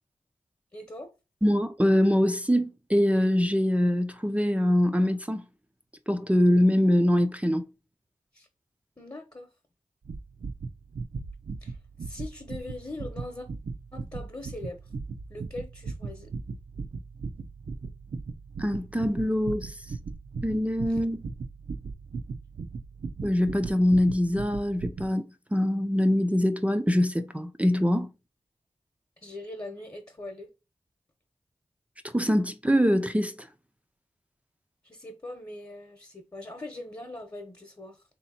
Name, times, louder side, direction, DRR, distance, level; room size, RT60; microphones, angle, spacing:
voice 1, 0.7-1.1 8.3-8.5 9.0-9.5 11.6-13.5 13.9-14.8 15.3-16.3 20.9-21.0 29.2-30.5 34.8-38.0, left 2 dB, 30° left, 1.0 m, -41 dB
voice 2, 1.4-5.4 6.1-7.6 18.6-19.8 20.4-21.2 23.2-28.1 32.1-33.5, equal, 10° right, 0.5 m, -24 dB
sound 1, 10.0-25.1, right 4 dB, 75° right, 0.6 m, -38 dB
3.4 x 2.8 x 4.2 m
cardioid pair, 50°, 12 cm